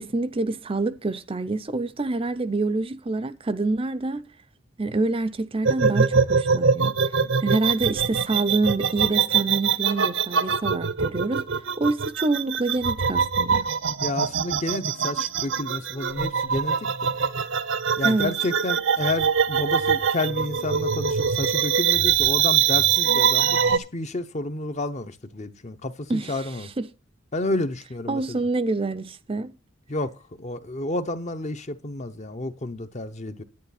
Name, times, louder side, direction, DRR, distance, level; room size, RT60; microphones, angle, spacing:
voice 1, 0.0-4.2 4.8-11.5 11.8-13.7 18.0-18.3 26.1-26.9 28.1-29.5, right 3 dB, 25° right, 0.5 m, -27 dB
sound 1, 5.6-23.8, right 6 dB, 65° right, 0.7 m, -23 dB
voice 2, 14.0-17.1 18.0-26.7 27.3-28.4 29.9-33.4, left 2 dB, 35° left, 0.8 m, -30 dB
10.5 x 9.5 x 4.1 m
head